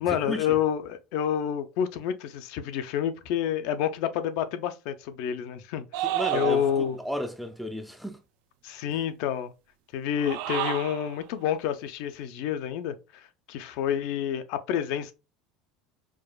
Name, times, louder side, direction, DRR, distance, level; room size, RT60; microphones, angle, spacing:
voice 1, 0.0-7.0 8.6-9.5 9.9-15.1, left 9 dB, 60° left, 0.5 m, -29 dB
sound 1, 5.9-7.0 10.1-11.1, right 13 dB, 70° right, 0.4 m, -30 dB
voice 2, 6.1-8.2, equal, ahead, 0.3 m, -33 dB
4.7 x 2.3 x 2.3 m
cardioid pair, 170°, 0 cm